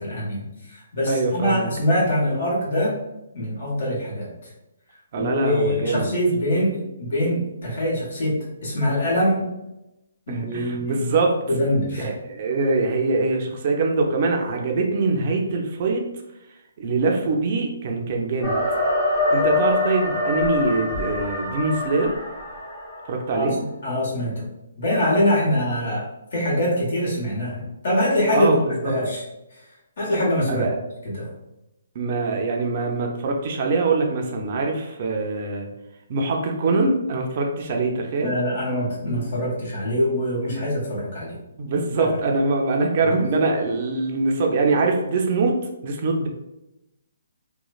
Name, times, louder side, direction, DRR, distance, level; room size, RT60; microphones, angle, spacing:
voice 1, 0.0-3.0 3.3-4.3 5.2-9.4 10.3-11.1 11.5-12.1 23.3-24.5 24.8-28.5 28.8-29.2 30.0-30.7 31.0-31.3 38.2-41.4 42.0-42.1 43.0-43.2, left 1 dB, 60° left, -5 dB, 1.4 m, -24 dB
voice 2, 1.1-1.7 5.1-6.1 10.3-11.3 12.0-16.0 16.8-18.6 19.3-22.1 23.1-23.6 28.3-28.9 30.5-30.8 32.0-35.7 36.1-38.3 41.6-45.5 45.8-46.3, right 3 dB, 45° right, 2 dB, 0.5 m, -23 dB
sound 1, 18.4-23.3, left 2 dB, 15° left, 1.1 m, -24 dB
3.0 x 2.1 x 2.4 m, 0.93 s
hypercardioid pair, 145°, 0 cm